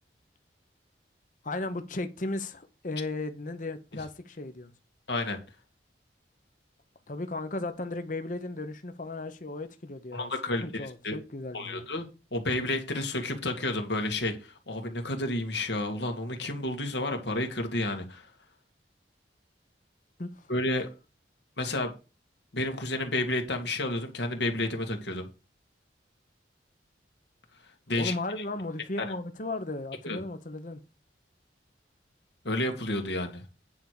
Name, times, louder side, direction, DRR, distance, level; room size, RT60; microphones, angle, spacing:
voice 1, 1.4-4.7 7.1-11.9 20.2-20.5 27.9-30.8, left 2 dB, 45° left, 0.9 m, -35 dB
voice 2, 5.1-5.4 10.1-11.2 11.5-18.3 20.5-20.9 21.6-21.9 22.5-25.3 27.9-28.4 29.0-29.1 30.0-30.2 32.4-33.4, left 2 dB, 70° left, 2.0 m, -31 dB
9.5 x 4.7 x 6.7 m
head